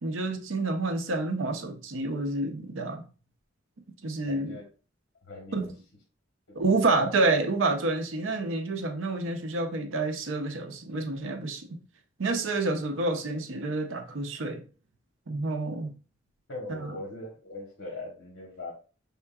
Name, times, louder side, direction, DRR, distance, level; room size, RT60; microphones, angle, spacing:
voice 1, 0.0-3.0 4.0-4.6 5.5-5.8 6.5-11.8 12.2-14.6 15.3-15.9 16.7-17.0, right 2 dB, 85° right, 0.6 m, -28 dB
voice 2, 4.3-4.6 5.3-5.6 6.8-7.0 16.5-18.7, left 2 dB, 70° left, 1.1 m, -40 dB
5.6 x 3.6 x 2.3 m
head